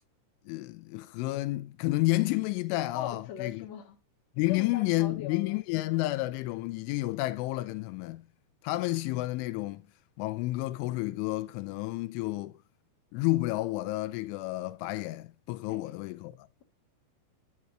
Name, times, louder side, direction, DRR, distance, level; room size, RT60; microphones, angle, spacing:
voice 1, 0.5-3.7 4.4-8.2 8.6-9.9 10.2-12.6 13.1-16.5, left 19 dB, 85° left, 3.2 m, -30 dB
voice 2, 2.9-4.0 4.5-5.6 15.7-15.8, left 10 dB, 45° left, 2.7 m, -40 dB
11.0 x 9.4 x 2.9 m
omnidirectional pair, 5.5 m